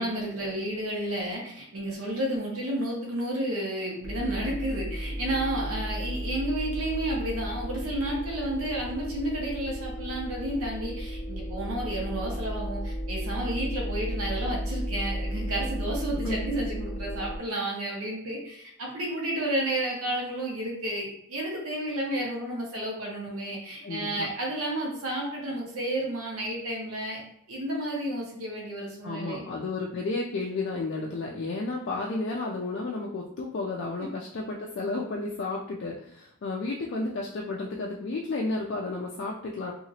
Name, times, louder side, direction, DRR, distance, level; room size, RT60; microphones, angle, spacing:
voice 1, 0.0-27.2 27.5-29.4, right 1 dB, 70° right, -2 dB, 0.8 m, -31 dB
sound 1, 4.0-17.4, equal, 25° left, 0.7 m, -34 dB
voice 2, 23.8-24.3 29.0-39.7, left 3 dB, 50° left, -2 dB, 0.3 m, -32 dB
2.9 x 2.4 x 2.7 m, 0.72 s
head